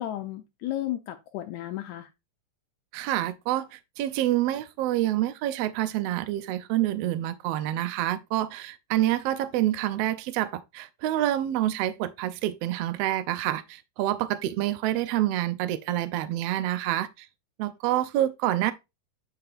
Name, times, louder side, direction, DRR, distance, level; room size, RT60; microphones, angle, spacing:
voice 1, 0.0-2.1, left 13 dB, 75° left, 1.9 m, -33 dB
voice 2, 2.9-17.3 17.6-18.7, right 13 dB, 85° right, 1.4 m, -27 dB
8.6 x 5.5 x 2.5 m
omnidirectional pair, 3.5 m